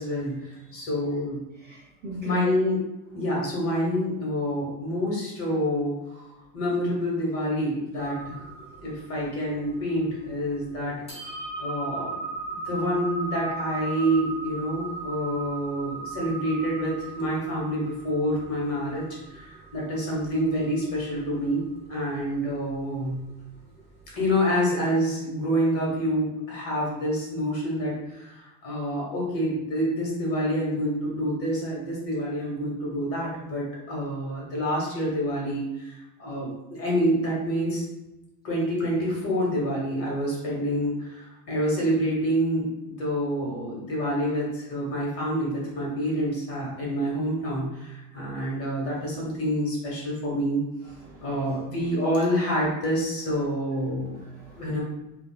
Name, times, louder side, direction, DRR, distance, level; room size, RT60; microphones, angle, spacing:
voice 1, 0.0-1.4 2.2-2.8 3.1-6.2 6.5-8.4 8.8-11.3 11.6-12.2 12.5-23.2 24.1-37.8 38.4-50.6 51.2-54.2 54.6-54.8, equal, 35° left, -4 dB, 1.1 m, -27 dB
voice 2, 1.6-2.6 50.8-51.4 54.2-54.8, equal, 25° right, -6 dB, 0.4 m, -39 dB
sound 1, 8.0-24.3, right 3 dB, 15° left, 0.7 m, -38 dB
4.1 x 2.3 x 2.2 m, 0.95 s
cardioid pair, 155°, 40 cm